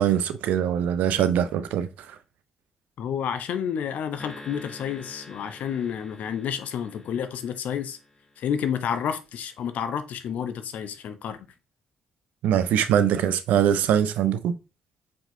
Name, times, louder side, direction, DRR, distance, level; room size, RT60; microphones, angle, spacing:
voice 1, 0.0-2.2 12.4-14.6, right 9 dB, 65° right, 0.4 m, -23 dB
voice 2, 3.0-8.0 8.4-11.5, left 8 dB, 60° left, 0.5 m, -30 dB
sound 1, 4.2-8.7, left 2 dB, 20° left, 1.0 m, -47 dB
4.7 x 3.6 x 2.6 m
figure-of-eight pair, 40°, 3 cm